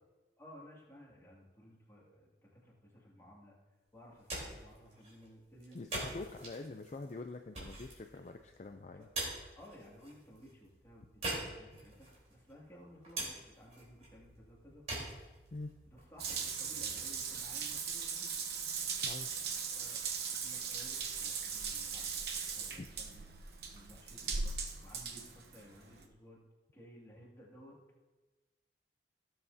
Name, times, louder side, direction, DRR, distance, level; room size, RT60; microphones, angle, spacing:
voice 1, 0.4-3.6 3.9-5.8 9.0-9.1 9.6-15.0 15.9-18.3 19.4-20.0 20.3-23.2 23.7-24.4 24.8-26.5 26.7-27.8, equal, 15° left, -4 dB, 2.3 m, -57 dB
sound 1, 4.0-18.0, right 2 dB, 40° right, 3.6 m, -46 dB
voice 2, 5.7-9.1 15.5-15.7 19.0-19.4 22.8-22.9, left 3 dB, 40° left, 6 dB, 0.4 m, -45 dB
Water tap faucet / Bathtub (filling or washing) / Drip, 16.2-26.0, right 5 dB, 65° right, 0.9 m, -39 dB
17.0 x 7.7 x 2.7 m, 1.2 s
head